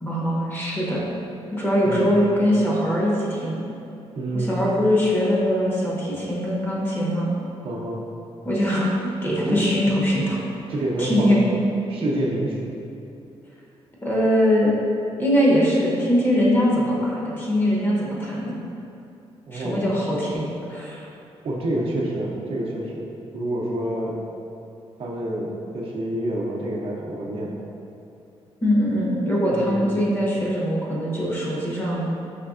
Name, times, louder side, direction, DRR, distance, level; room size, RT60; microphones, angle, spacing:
voice 1, 0.0-1.0 1.5-3.6 4.3-7.3 8.4-10.4 11.0-11.4 14.0-14.7 15.2-18.5 19.5-21.1 28.6-32.1, equal, 20° left, -5 dB, 0.8 m, -22 dB
voice 2, 4.2-4.5 7.6-8.0 9.5-9.7 10.7-11.4 11.8-12.7 19.5-19.9 21.4-23.1 23.3-24.2 25.0-27.5 29.5-29.9, right 1 dB, 60° right, -3 dB, 0.6 m, -27 dB
5.1 x 3.2 x 2.4 m, 2.7 s
wide cardioid pair, 145°, 11 cm